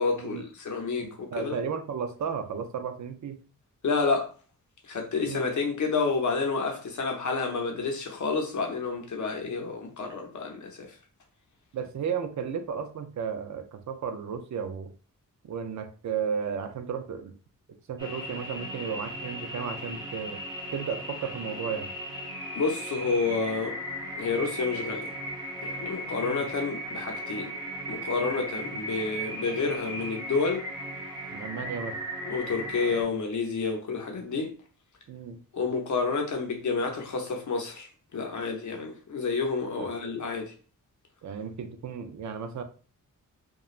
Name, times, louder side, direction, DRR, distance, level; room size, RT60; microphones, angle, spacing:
voice 1, 0.0-1.6 3.8-4.3 4.9-10.9 22.6-23.8 24.2-25.2 25.6-27.5 27.9-30.6 32.2-34.6 35.5-40.5, left 4 dB, 60° left, 0.7 m, -29 dB
voice 2, 1.0-3.4 5.2-5.5 11.7-14.9 15.4-17.3 17.9-20.4 20.7-21.9 26.2-26.5 31.3-32.0 35.1-35.4 39.8-39.9 41.2-42.6, right 6 dB, 60° right, 0.5 m, -34 dB
sound 1, 18.0-33.0, equal, 15° right, 0.8 m, -37 dB
3.0 x 2.2 x 2.4 m
wide cardioid pair, 155°, 33 cm